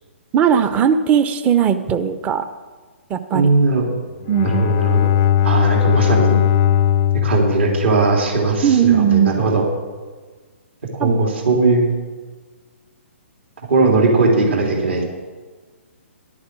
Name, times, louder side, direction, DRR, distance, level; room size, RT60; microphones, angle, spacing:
voice 1, 0.3-2.5 3.1-3.5 4.3-4.8 8.6-9.3 11.0-11.2, right 8 dB, 20° right, 11 dB, 0.7 m, -17 dB
voice 2, 3.3-3.9 4.4-5.1 5.4-6.4 7.2-9.7 10.9-11.9 13.7-15.0, right 3 dB, 60° right, 0 dB, 3.2 m, -18 dB
Bowed string instrument, 4.2-8.7, left 10 dB, 35° left, 0.5 m, -18 dB
11.5 x 8.7 x 7.4 m, 1.4 s
figure-of-eight pair, 125°, 7 cm